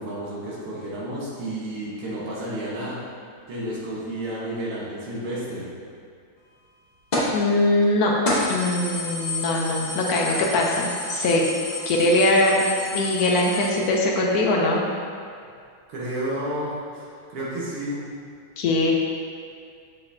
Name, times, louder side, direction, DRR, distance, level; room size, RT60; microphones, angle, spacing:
voice 1, 0.0-3.0 3.5-5.7 15.9-18.0, right 1 dB, 85° right, -6 dB, 2.2 m, -31 dB
sound 1, 7.1-7.4 7.8-7.9 8.2-13.7, left 2 dB, 35° left, 0.6 m, -29 dB
voice 2, 7.3-8.1 8.5-11.4 11.9-12.6 12.9-14.8 18.6-18.9, left 2 dB, 75° left, -1 dB, 0.9 m, -21 dB
6.8 x 5.7 x 2.7 m, 2.3 s
omnidirectional pair, 2.4 m